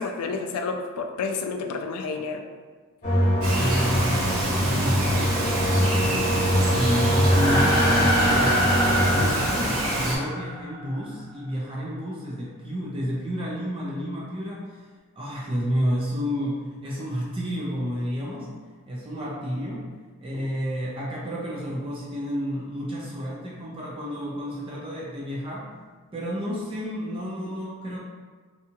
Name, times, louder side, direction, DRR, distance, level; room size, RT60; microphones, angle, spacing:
voice 1, 0.0-2.4, left 4 dB, 85° left, 5 dB, 0.3 m, -30 dB
sound 1, 3.0-9.3, equal, 35° left, 0.9 m, -23 dB
Bird vocalization bird call bird song, 3.4-10.2, right 1 dB, 65° right, 0.7 m, -27 dB
voice 2, 3.5-8.6 9.0-14.9 15.2-18.5 18.9-19.9 20.2-25.7 26.1-28.0, equal, 25° right, -5 dB, 0.4 m, -30 dB
sound 2, 7.2-10.9, equal, 20° left, 0.6 m, -26 dB
2.7 x 2.3 x 2.8 m, 1.4 s
head